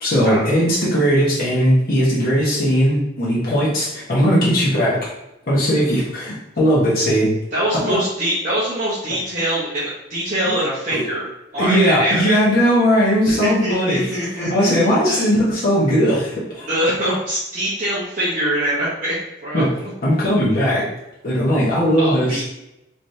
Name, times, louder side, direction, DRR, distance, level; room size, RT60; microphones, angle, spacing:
voice 1, 0.0-5.1 5.5-7.3 7.8-8.0 11.6-14.1 14.4-16.7 19.5-19.7 20.0-20.9 21.2-22.4, equal, 50° left, -8 dB, 1.0 m, -18 dB
voice 2, 7.5-11.3 11.5-12.4 13.3-15.2 16.7-19.1 19.4-19.9 22.0-22.4, right 1 dB, 40° right, -10 dB, 0.9 m, -23 dB
3.2 x 3.1 x 2.7 m, 0.87 s
head